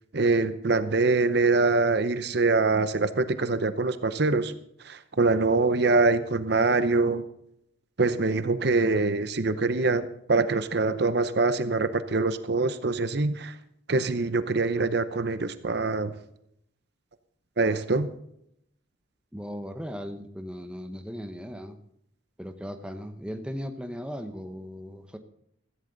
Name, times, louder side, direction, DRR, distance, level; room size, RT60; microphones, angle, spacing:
voice 1, 0.1-4.5 4.8-7.2 8.0-13.5 13.9-16.1 17.6-18.1, right 3 dB, 55° right, 12 dB, 0.8 m, -24 dB
voice 2, 19.3-21.8 22.4-25.2, equal, 5° right, 7 dB, 0.8 m, -37 dB
15.5 x 14.5 x 4.0 m, 0.75 s
head